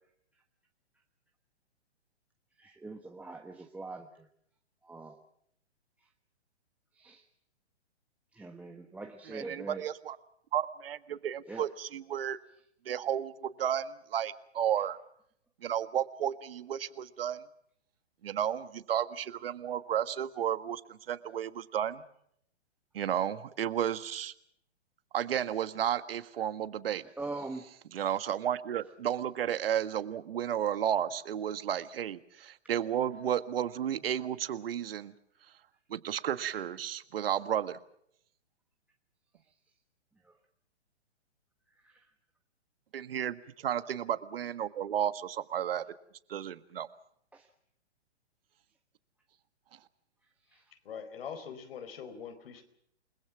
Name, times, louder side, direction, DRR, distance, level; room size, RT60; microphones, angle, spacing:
voice 1, 2.6-4.3 4.8-5.2 7.0-7.2 8.3-9.8 11.5-11.6 27.0-27.6 41.8-42.0 47.3-47.5 50.5-50.6, right 3 dB, 5° right, 2 dB, 1.2 m, -42 dB
voice 2, 9.3-10.2 10.5-12.4 12.8-15.0 15.6-17.4 18.2-22.0 22.9-24.3 25.1-27.0 27.9-35.1 35.9-37.8 42.9-45.8 46.3-46.9, right 10 dB, 55° right, 13 dB, 1.6 m, -32 dB
voice 3, 50.8-52.6, left 7 dB, 55° left, 9 dB, 4.5 m, -43 dB
29.0 x 20.5 x 6.1 m, 0.70 s
figure-of-eight pair, 125°, 34 cm